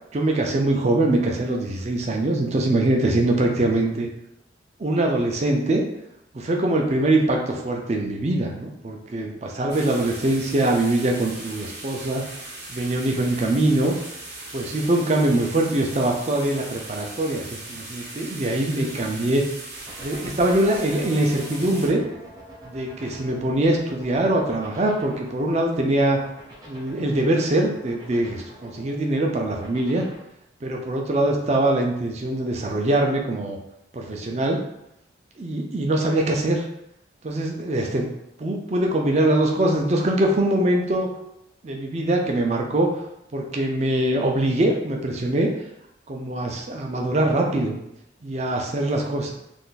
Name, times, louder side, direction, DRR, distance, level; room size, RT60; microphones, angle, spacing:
voice 1, 0.1-4.1 4.8-5.8 6.3-12.2 12.7-13.9 14.5-19.4 20.0-22.0 22.7-26.2 26.7-30.0 30.6-33.6 33.9-34.6 35.4-36.7 37.2-38.1 38.4-41.1 41.6-42.9 43.3-45.5 46.1-47.8 48.2-49.3, right 1 dB, 35° right, 1 dB, 0.4 m, -23 dB
sound 1, 9.7-21.9, right 2 dB, 60° right, 0.7 m, -39 dB
sound 2, 19.8-30.1, right 1 dB, 20° right, 0.8 m, -44 dB
2.5 x 2.4 x 3.7 m, 0.80 s
head